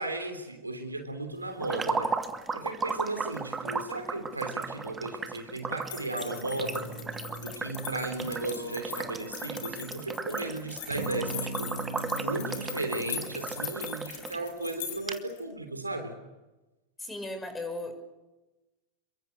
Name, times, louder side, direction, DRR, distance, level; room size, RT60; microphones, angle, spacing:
voice 1, 0.0-2.2 2.5-6.9 7.4-11.9 12.1-16.2, right 2 dB, 80° right, 7 dB, 3.4 m, -35 dB
sound 1, 1.6-14.4 14.7-14.8 15.1-15.2, right 4 dB, 15° right, 1.7 m, -36 dB
sound 2, 5.8-15.4, left 9 dB, 50° left, 4.2 m, -41 dB
sound 3, 6.5-7.6 8.2-10.5 10.9-13.5, right 2 dB, 65° right, 4.3 m, -41 dB
voice 2, 17.0-17.9, left 2 dB, 10° left, 7 dB, 5.1 m, -36 dB
28.5 x 23.5 x 6.7 m, 1.1 s
figure-of-eight pair, 90°, 0 cm